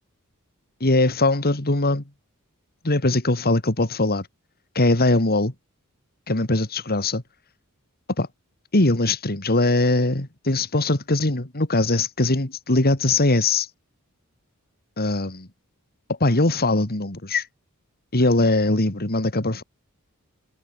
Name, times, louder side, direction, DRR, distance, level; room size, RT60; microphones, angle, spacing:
voice 1, 0.8-2.0 2.8-4.3 4.7-5.5 6.3-7.2 8.2-8.3 8.7-13.7 15.0-15.4 16.2-17.4 18.1-19.6, left 2 dB, 45° left, 2.6 m, -21 dB
head